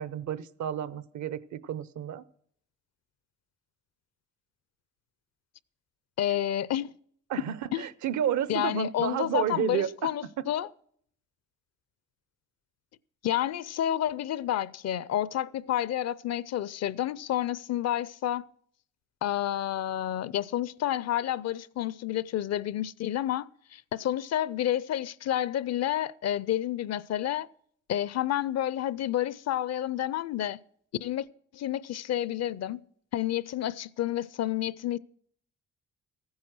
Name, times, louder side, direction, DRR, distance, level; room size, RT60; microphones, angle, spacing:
voice 1, 0.0-2.2 7.3-10.1, right 9 dB, 70° right, 0.8 m, -31 dB
voice 2, 6.2-6.9 7.7-7.8 8.5-10.7 13.2-18.5 19.2-27.5 27.9-30.6 31.0-31.3 31.5-32.8 33.1-35.0, left 12 dB, 60° left, 0.5 m, -30 dB
15.0 x 9.5 x 6.1 m
cardioid pair, 90°, 30 cm